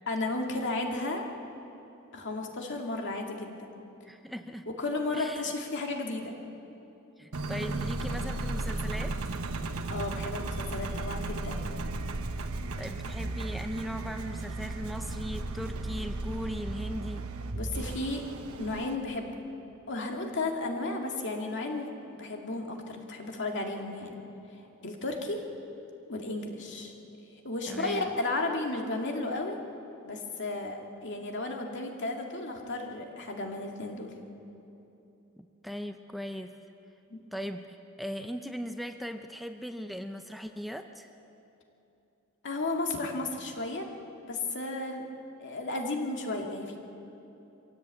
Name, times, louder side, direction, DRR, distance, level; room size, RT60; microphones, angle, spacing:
voice 1, 0.1-1.3 2.1-3.6 4.8-6.3 9.9-11.7 17.5-18.2 18.6-19.4 19.9-24.2 24.8-25.4 26.1-26.9 27.4-29.6 30.0-34.1 37.1-37.2 42.4-43.9 44.2-45.0 45.4-46.8, left 2 dB, 55° left, 2 dB, 2.3 m, -33 dB
voice 2, 4.0-4.6 5.1-5.5 7.2-9.3 12.8-17.3 27.7-28.2 35.6-36.6 37.3-41.1, equal, ahead, 6 dB, 0.6 m, -38 dB
Engine, 7.3-19.0, right 2 dB, 85° right, 1.2 m, -35 dB
24.0 x 16.5 x 8.4 m, 3.0 s
head